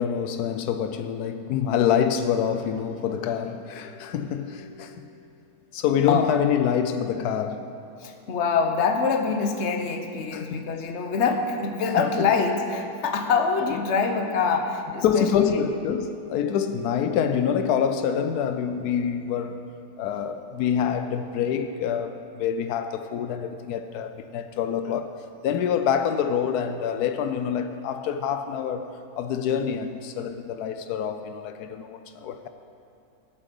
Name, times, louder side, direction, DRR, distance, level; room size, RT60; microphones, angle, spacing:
voice 1, 0.0-5.2 5.7-7.8 10.3-10.7 15.0-19.6 20.0-32.5, left 8 dB, 80° left, 1.1 m, -26 dB
voice 2, 8.0-15.6, left 5 dB, 50° left, 1.1 m, -25 dB
17.0 x 7.6 x 5.3 m
omnidirectional pair, 1.6 m